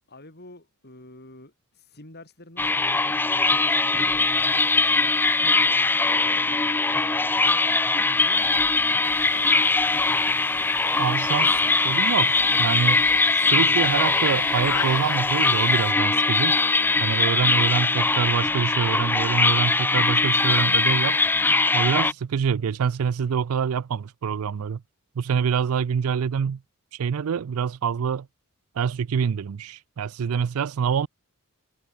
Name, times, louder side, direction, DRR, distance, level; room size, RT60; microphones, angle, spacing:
voice 1, 0.1-9.5, left 1 dB, 45° left, 6.5 m, -49 dB
sound 1, 2.6-22.1, left 3 dB, 10° left, 0.4 m, -21 dB
sound 2, 9.0-15.9, left 8 dB, 90° left, 0.9 m, -39 dB
voice 2, 11.0-13.1 13.5-16.6 17.0-21.2 21.7-24.8 25.2-26.6 26.9-28.3 28.8-31.1, right 7 dB, 70° right, 0.4 m, -26 dB
head